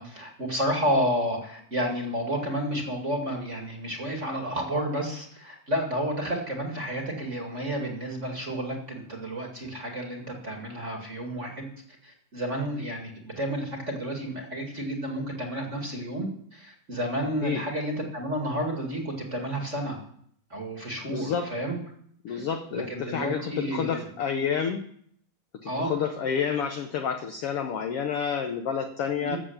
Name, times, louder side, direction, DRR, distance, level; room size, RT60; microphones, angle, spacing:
voice 1, 0.0-11.7 12.0-20.0 20.5-21.8 22.3-22.4 22.7-24.1 25.6-25.9 29.2-29.4, equal, 25° right, 1 dB, 2.0 m, -31 dB
voice 2, 21.0-21.5 22.2-24.9 25.6-29.4, left 7 dB, 70° left, 6 dB, 1.4 m, -29 dB
14.0 x 7.9 x 7.1 m, 0.64 s
omnidirectional pair, 3.8 m